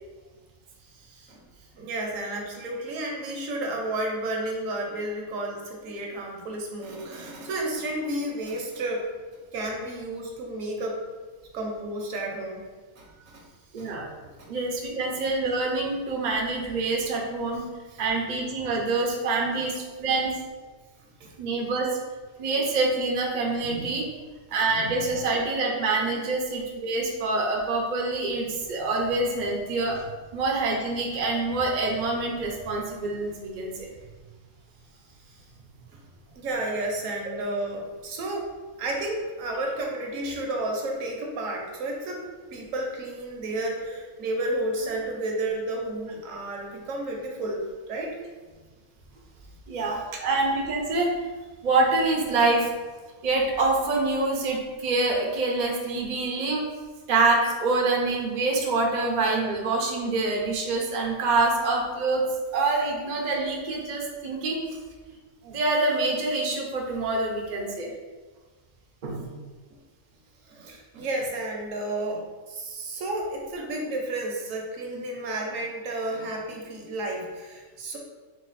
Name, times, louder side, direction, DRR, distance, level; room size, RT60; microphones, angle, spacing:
voice 1, 0.9-1.4 1.7-9.1 9.5-11.0 11.5-12.6 13.0-13.4 13.7-13.9 14.4-14.5 17.9-18.0 19.5-19.6 21.2-21.3 23.6-24.0 24.7-25.1 26.0-26.2 35.3-35.4 36.4-38.5 38.8-48.2 70.5-78.0, right 1 dB, 70° right, 0 dB, 1.1 m, -32 dB
voice 2, 13.7-14.0 14.5-17.6 18.0-20.3 21.4-21.9 22.4-24.0 24.5-30.0 30.3-33.9 49.7-51.1 51.6-52.7 53.2-56.6 57.1-62.2 62.5-64.6 65.1-65.2 65.4-67.9 69.0-69.3, right 3 dB, 50° right, 0 dB, 0.5 m, -26 dB
4.1 x 2.3 x 4.0 m, 1.3 s
omnidirectional pair, 1.5 m